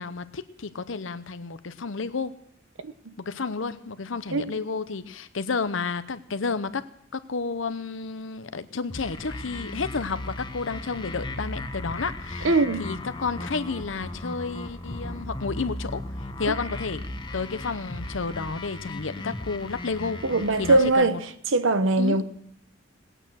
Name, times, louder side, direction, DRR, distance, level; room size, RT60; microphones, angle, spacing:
voice 1, 0.0-2.4 3.2-16.0 16.4-17.0 17.3-20.2 20.6-21.2 22.0-22.2, left 4 dB, 80° left, 0.8 m, -31 dB
sound 1, 8.9-20.9, left 1 dB, 25° left, 0.9 m, -36 dB
voice 2, 12.4-12.8 16.4-16.5 20.2-21.2 21.5-22.2, right 2 dB, 90° right, 1.0 m, -21 dB
19.0 x 9.0 x 6.3 m
head